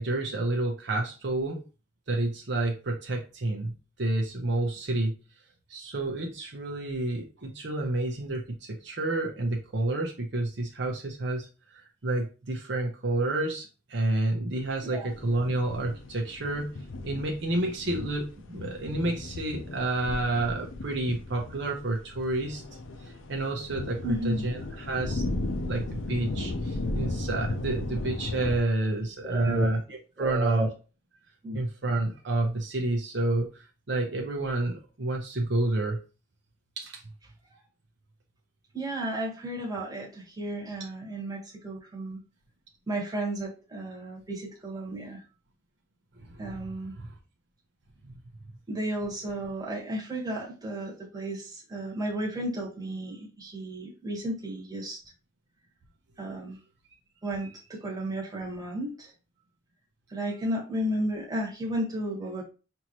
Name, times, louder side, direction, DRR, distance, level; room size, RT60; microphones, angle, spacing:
voice 1, 0.0-1.6 2.1-5.2 5.7-16.7 17.0-22.6 23.0-24.0 24.2-29.8 30.2-30.7 31.5-36.0 36.8-37.0 46.3-46.7 47.0-47.1 48.0-48.1, right 2 dB, 60° right, 0 dB, 0.8 m, -29 dB
sound 1, 15.1-28.6, left 2 dB, 80° left, 0.6 m, -35 dB
voice 2, 24.0-24.5 29.2-29.7 30.2-30.7 31.4-31.6 38.7-42.2 42.9-45.2 46.4-46.9 48.7-55.0 56.2-56.6 57.2-59.1 60.1-62.4, right 1 dB, 20° right, -3 dB, 1.4 m, -33 dB
5.7 x 2.6 x 3.0 m, 0.33 s
head